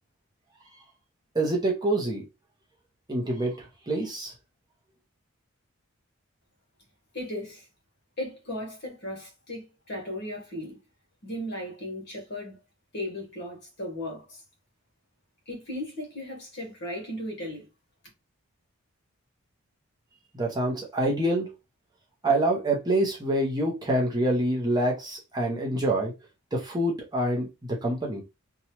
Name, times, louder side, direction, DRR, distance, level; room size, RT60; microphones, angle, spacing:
voice 1, 1.3-2.2 3.1-4.3 20.3-21.5 22.2-26.1 26.5-28.2, right 1 dB, 20° right, 0.7 m, -26 dB
voice 2, 7.1-7.7 8.2-10.8 11.2-12.6 12.9-14.4 15.5-17.7, left 1 dB, 50° left, 1.3 m, -36 dB
2.9 x 2.3 x 2.8 m
head